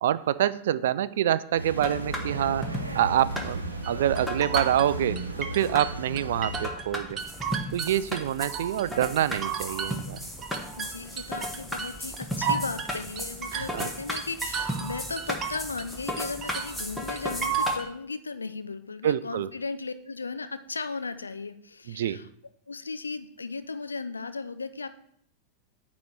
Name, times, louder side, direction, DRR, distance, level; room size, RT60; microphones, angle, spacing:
voice 1, 0.0-7.2 7.7-10.2 13.5-13.9 19.0-19.5 21.9-22.2, right 11 dB, 60° right, 17 dB, 0.3 m, -26 dB
sound 1, 1.5-6.7, right 1 dB, 80° right, 0.8 m, -35 dB
sound 2, 1.8-17.8, equal, ahead, 1.1 m, -36 dB
sound 3, 3.8-6.9 7.2-8.9 9.2-15.9 16.2-17.9, right 6 dB, 25° right, 0.8 m, -33 dB
voice 2, 10.8-22.3 22.7-24.9, left 4 dB, 75° left, 11 dB, 0.5 m, -36 dB
9.2 x 3.1 x 6.6 m, 0.68 s
figure-of-eight pair, 90°, 0 cm